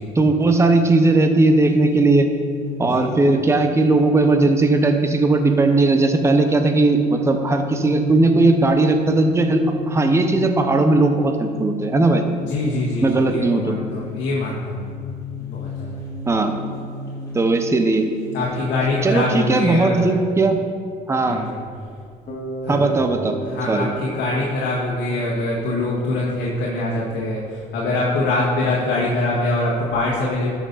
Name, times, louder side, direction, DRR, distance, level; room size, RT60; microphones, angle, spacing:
voice 1, 0.1-2.3 2.8-12.2 13.0-13.8 16.3-16.5 17.3-18.1 19.0-20.6 21.1-21.4 22.7-23.4 23.7-23.9, right 2 dB, 15° right, 5 dB, 0.8 m, -17 dB
sound 1, 1.6-19.9, left 7 dB, 20° left, 2.2 m, -34 dB
voice 2, 12.4-14.9 15.4-16.0 18.3-20.1 21.3-21.6 22.6-23.0 23.4-30.5, left 2 dB, 80° left, -4 dB, 1.6 m, -24 dB
Bass guitar, 22.3-26.2, right 3 dB, 45° left, 1.9 m, -34 dB
12.0 x 6.1 x 4.1 m, 2.2 s
cardioid pair, 110°, 17 cm